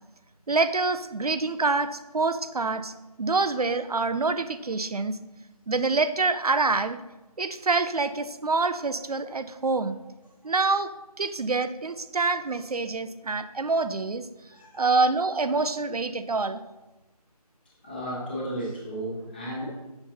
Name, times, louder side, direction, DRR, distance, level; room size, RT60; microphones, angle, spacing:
voice 1, 0.5-2.9 3.2-5.2 5.7-7.0 7.4-10.0 10.4-10.9 11.2-14.2 14.7-16.6, right 3 dB, 70° right, 11 dB, 0.5 m, -26 dB
voice 2, 14.5-15.0 17.8-19.7, right 1 dB, 15° left, -6 dB, 1.3 m, -34 dB
7.7 x 5.7 x 2.9 m, 1.1 s
figure-of-eight pair, 165°, 20 cm